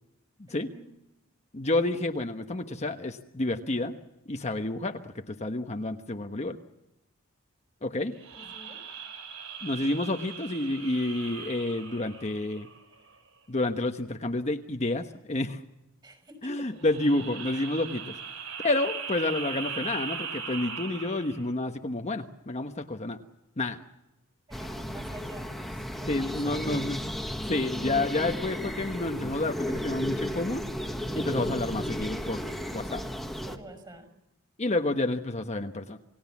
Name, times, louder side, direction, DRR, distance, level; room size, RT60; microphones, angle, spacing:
voice 1, 0.5-0.8 8.3-8.8 16.0-16.7 24.5-26.9 33.4-34.1, right 1 dB, 20° right, 8 dB, 5.7 m, -47 dB
voice 2, 1.5-3.9 4.3-6.6 7.8-8.1 9.6-12.7 13.5-15.6 16.4-18.1 18.6-23.2 23.6-23.8 26.1-27.0 27.5-30.6 31.1-32.4 32.7-33.0 34.6-36.0, left 2 dB, 35° left, 5 dB, 1.2 m, -29 dB
sound 1, 8.2-12.9 16.8-21.5, right 6 dB, 70° right, 3.6 m, -39 dB
sound 2, 24.5-33.6, equal, ahead, 1.7 m, -34 dB
28.5 x 19.0 x 7.3 m, 0.92 s
head